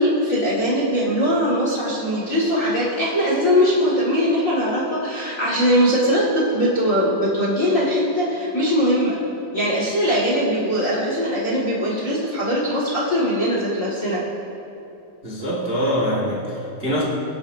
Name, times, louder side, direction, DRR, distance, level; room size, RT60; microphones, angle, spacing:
voice 1, 0.0-9.2 9.5-14.2, equal, 35° left, -6 dB, 1.4 m, -21 dB
voice 2, 15.2-17.0, equal, 30° right, -5 dB, 1.0 m, -24 dB
24.5 x 8.5 x 2.7 m, 2.9 s
omnidirectional pair, 4.1 m